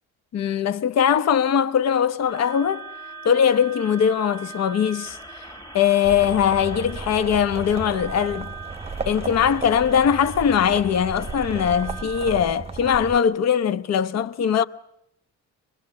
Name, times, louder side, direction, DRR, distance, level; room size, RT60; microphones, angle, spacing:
voice 1, 0.3-2.9 3.2-5.2 5.7-8.5 9.1-14.6, left 8 dB, 60° left, 1.0 m, -21 dB
sound 1, 2.3-12.3, right 3 dB, 15° left, 2.0 m, -40 dB
sound 2, 6.0-13.2, right 4 dB, 20° right, 0.9 m, -34 dB
25.0 x 21.5 x 7.1 m
cardioid pair, 90°, 30 cm